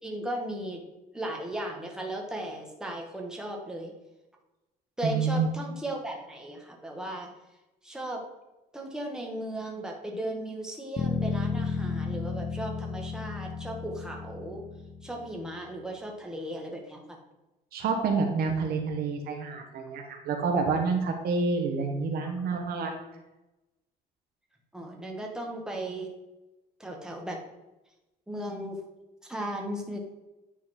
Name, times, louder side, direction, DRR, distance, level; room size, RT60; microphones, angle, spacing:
voice 1, 0.0-0.8 1.1-3.9 5.0-7.3 7.8-8.2 8.7-14.6 15.0-17.0 22.2-22.3 24.7-26.1 26.8-27.4 28.3-28.8 29.2-30.0, right 1 dB, 5° right, 0 dB, 1.5 m, -36 dB
voice 2, 5.0-5.5 17.7-22.9, right 4 dB, 65° right, 3 dB, 1.4 m, -28 dB
Bass guitar, 11.0-15.3, left 5 dB, 35° left, 0.6 m, -33 dB
9.5 x 4.2 x 4.3 m, 1.0 s
cardioid pair, 110°, 17 cm